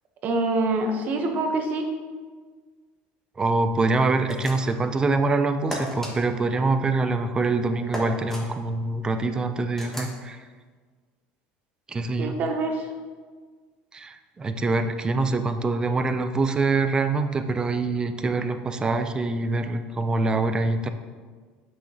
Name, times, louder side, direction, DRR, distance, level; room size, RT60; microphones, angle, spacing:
voice 1, 0.2-1.9 12.2-12.9, right 2 dB, 40° right, 4 dB, 1.0 m, -25 dB
voice 2, 3.4-10.4 11.9-12.4 13.9-20.9, right 3 dB, 20° right, 8 dB, 0.4 m, -25 dB
sound 1, 4.3-4.8 5.7-6.1 7.9-8.4 9.8-10.2, equal, 10° left, 1.3 m, -34 dB
7.4 x 5.7 x 2.8 m, 1.5 s
supercardioid pair, 130°, 4 cm